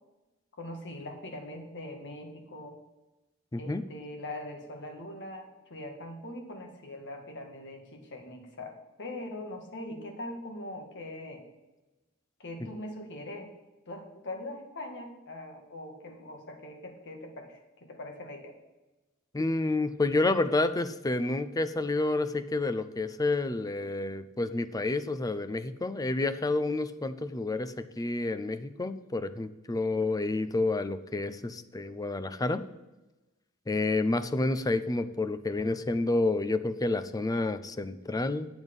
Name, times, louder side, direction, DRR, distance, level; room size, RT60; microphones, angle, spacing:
voice 1, 0.5-2.8 3.6-8.7 9.0-11.4 12.4-13.5 13.9-18.6, left 1 dB, 55° left, 3 dB, 1.8 m, -42 dB
voice 2, 3.5-3.8 19.3-32.6 33.7-38.5, left 2 dB, 15° left, 11 dB, 0.5 m, -29 dB
9.2 x 8.0 x 5.3 m, 1.1 s
head